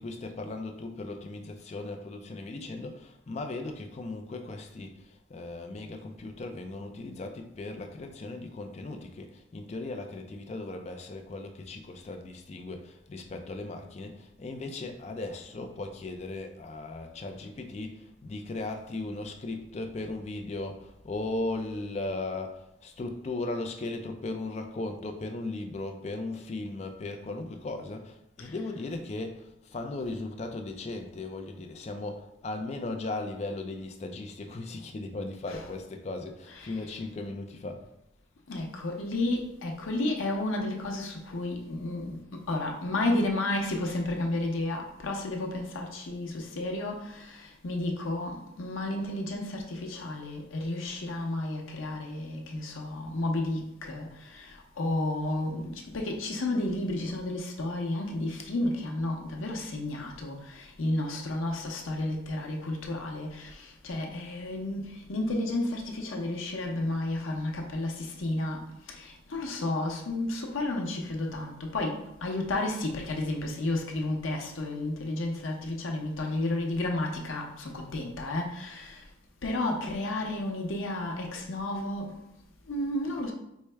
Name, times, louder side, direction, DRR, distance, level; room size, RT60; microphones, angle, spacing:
voice 1, 0.0-37.8, left 2 dB, 35° left, 0.4 m, -37 dB
voice 2, 38.5-79.1 79.4-82.2 82.7-83.3, left 2 dB, 90° left, 0.7 m, -32 dB
4.5 x 2.1 x 3.3 m
head